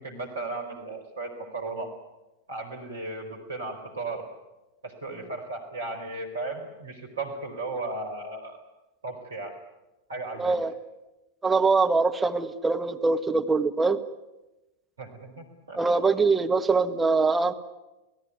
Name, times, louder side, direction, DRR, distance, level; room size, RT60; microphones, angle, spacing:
voice 1, 0.0-1.9 2.5-4.3 4.8-8.6 9.0-9.5 10.1-10.6 15.0-16.0, right 3 dB, 70° right, 3 dB, 4.5 m, -35 dB
voice 2, 10.4-10.7 11.4-14.0 15.8-17.5, right 4 dB, 10° right, 5 dB, 1.6 m, -23 dB
29.0 x 18.0 x 9.5 m, 1.0 s
figure-of-eight pair, 90°, 0 cm